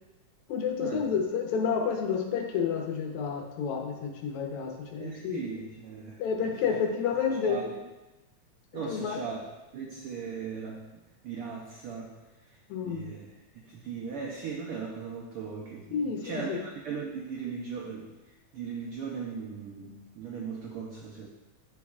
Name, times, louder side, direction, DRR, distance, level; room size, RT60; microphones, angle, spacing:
voice 1, 0.5-5.4 6.2-7.7 8.7-9.2 12.7-13.1 15.9-16.6, left 6 dB, 80° left, 2 dB, 2.2 m, -30 dB
voice 2, 5.0-6.6 7.4-7.8 8.7-9.4 9.7-12.1 12.4-13.3 13.5-21.3, right 6 dB, 85° right, -2 dB, 1.2 m, -38 dB
12.0 x 4.2 x 2.4 m, 1.1 s
omnidirectional pair, 3.3 m